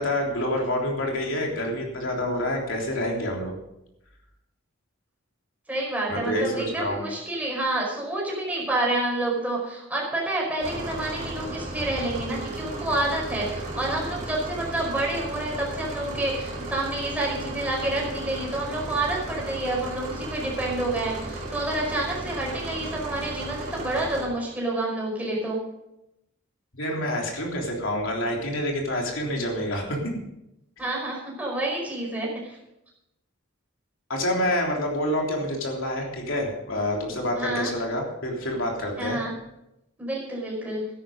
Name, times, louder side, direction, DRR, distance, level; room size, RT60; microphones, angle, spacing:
voice 1, 0.0-3.5 6.1-7.0 26.7-30.0 34.1-39.2, left 1 dB, 70° left, 0 dB, 3.4 m, -27 dB
voice 2, 5.7-25.6 30.8-32.6 37.4-37.7 39.0-39.3 40.0-40.8, right 1 dB, 10° right, -3 dB, 5.1 m, -28 dB
sound 1, 10.6-24.3, right 2 dB, 35° right, 3.1 m, -35 dB
13.0 x 11.0 x 5.2 m, 0.86 s
head